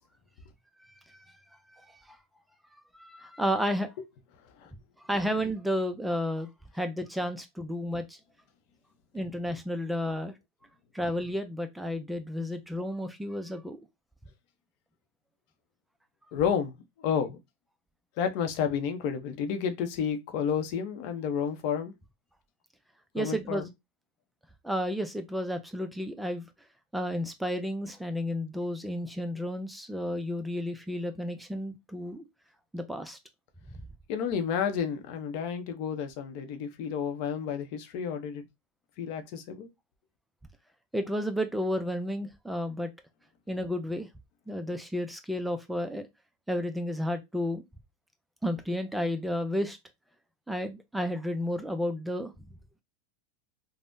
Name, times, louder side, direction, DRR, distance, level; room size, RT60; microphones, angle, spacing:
voice 1, 0.8-1.4 1.7-2.2 2.9-3.9 5.0-8.2 9.1-10.3 10.9-13.8 23.1-23.7 24.6-26.5 26.9-32.2 32.7-33.2 40.9-42.9 43.5-44.1 44.5-46.1 46.5-47.6 48.4-49.8 50.5-52.3, equal, 5° right, 0.3 m, -32 dB
voice 2, 16.3-16.8 17.0-17.4 18.2-21.9 23.2-23.7 34.1-38.5 39.0-39.7, left 7 dB, 55° left, 0.6 m, -31 dB
3.5 x 2.0 x 2.5 m
supercardioid pair, 135°, 0 cm